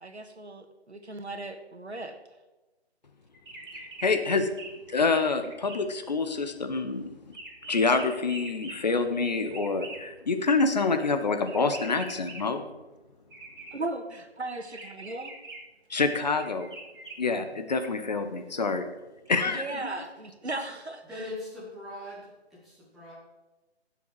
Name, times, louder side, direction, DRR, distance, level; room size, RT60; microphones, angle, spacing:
voice 1, 0.0-2.2 13.7-15.3 19.4-21.3, right 2 dB, 80° right, 7 dB, 1.6 m, -37 dB
sound 1, 3.3-4.1 4.4-5.8 6.1-10.0 11.5-12.5 13.3-13.7 14.7-15.6 16.3-17.1, right 2 dB, 50° right, 2.6 m, -43 dB
voice 2, 3.7-4.5 4.9-7.0 7.7-12.6 15.9-16.7 17.2-18.9 19.3-19.6, left 4 dB, 40° left, 7 dB, 1.0 m, -27 dB
voice 3, 21.0-23.1, left 2 dB, ahead, -9 dB, 0.9 m, -41 dB
17.0 x 7.1 x 4.7 m, 1.1 s
figure-of-eight pair, 150°, 33 cm